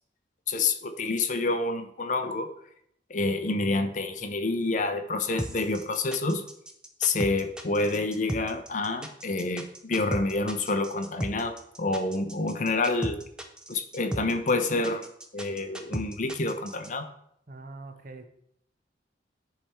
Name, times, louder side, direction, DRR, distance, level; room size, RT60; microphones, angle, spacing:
voice 1, 0.5-2.5 3.1-6.4 7.0-13.2 13.7-15.0 15.3-17.1, left 3 dB, 45° left, 8 dB, 0.6 m, -28 dB
sound 1, 5.4-16.9, right 1 dB, 5° right, 0.5 m, -35 dB
voice 2, 17.5-18.3, right 3 dB, 50° right, 7 dB, 0.7 m, -43 dB
10.5 x 3.4 x 4.3 m, 0.72 s
head